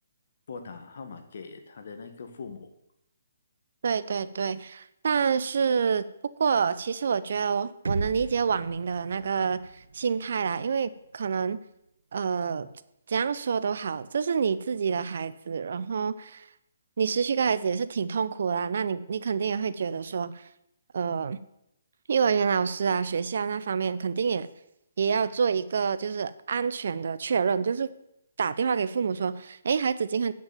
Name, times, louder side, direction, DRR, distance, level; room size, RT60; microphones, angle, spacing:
voice 1, 0.5-2.7, left 5 dB, 60° left, 7 dB, 1.7 m, -41 dB
voice 2, 3.8-6.1 6.4-9.6 9.9-11.6 12.1-12.7 13.1-16.5 17.0-20.5 20.9-21.4 22.1-24.5 25.0-27.9 28.4-30.3, right 6 dB, 60° right, 14 dB, 0.7 m, -27 dB
sound 1, 7.8-11.8, right 3 dB, 85° right, 1.0 m, -38 dB
9.1 x 6.2 x 7.3 m, 0.80 s
hypercardioid pair, 155°, 0 cm